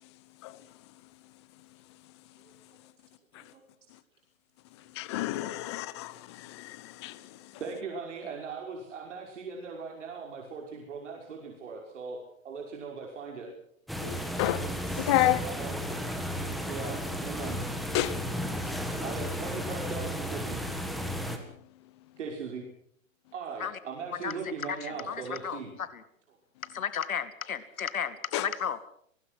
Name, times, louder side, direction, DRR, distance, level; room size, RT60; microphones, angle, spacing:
voice 1, 5.0-7.2 14.0-14.6 14.9-15.4 17.9-18.1 28.3-28.5, left 15 dB, 20° left, 0.8 m, -29 dB
voice 2, 7.6-12.2 12.4-13.5 15.4-15.8 16.7-17.6 19.0-20.6 22.2-22.6 23.3-25.7 28.1-28.2, right 5 dB, 60° right, 5.7 m, -39 dB
sound 1, 13.9-21.4, equal, ahead, 1.6 m, -34 dB
voice 3, 24.8-25.6 25.9-26.0 26.7-28.8, left 7 dB, 85° left, 2.3 m, -33 dB
24.5 x 20.5 x 6.2 m
hypercardioid pair, 165°, 41 cm